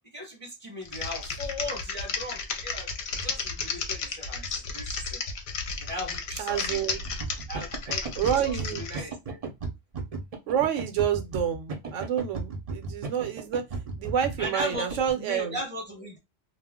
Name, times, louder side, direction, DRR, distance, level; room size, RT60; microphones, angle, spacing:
voice 1, 0.1-5.2 5.8-6.8 7.5-9.4 14.4-16.2, left 1 dB, 10° left, 0.7 m, -38 dB
Typing, 0.8-9.0, left 4 dB, 65° left, 0.8 m, -33 dB
voice 2, 6.4-7.0 8.2-8.8 10.5-13.6 14.0-15.6, right 9 dB, 80° right, 0.9 m, -28 dB
sound 1, 7.0-15.1, right 4 dB, 50° right, 0.4 m, -35 dB
2.4 x 2.0 x 3.5 m
omnidirectional pair, 1.3 m